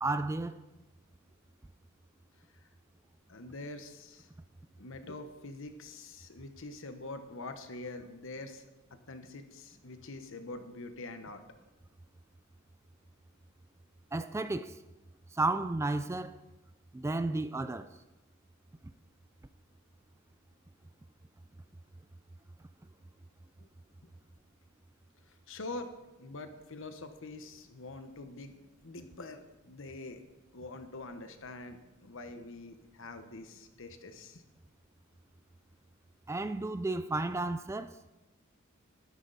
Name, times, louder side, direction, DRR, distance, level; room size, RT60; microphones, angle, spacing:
voice 1, 0.0-0.6 14.1-14.8 15.3-16.4 16.9-17.9 36.3-37.9, right 2 dB, 15° right, 0.3 m, -32 dB
voice 2, 3.3-4.3 4.8-8.6 9.1-11.4 23.6-23.7 24.0-24.1 25.3-25.9 26.2-30.2 30.5-34.4, left 2 dB, 65° left, 1.2 m, -45 dB
12.5 x 12.0 x 4.1 m
head